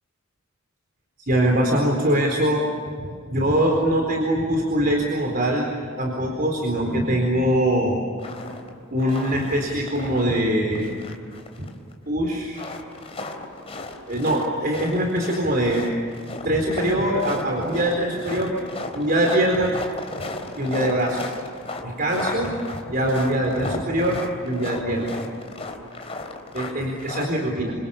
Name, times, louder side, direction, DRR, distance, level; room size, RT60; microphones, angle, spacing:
voice 1, 1.2-2.7 3.0-5.7 6.0-8.0 8.4-8.5 8.9-10.9 11.6-11.7 12.1-12.7 14.1-15.8 16.4-18.6 18.9-19.8 20.6-21.3 21.8-22.5 22.9-25.1 26.5-27.7, right 1 dB, 45° right, 0 dB, 4.3 m, -23 dB
sound 1, 8.2-8.7 9.0-10.5 10.7-11.9 12.5-27.3, left 2 dB, 30° left, 3.6 m, -35 dB
29.0 x 26.5 x 7.2 m, 2.3 s
head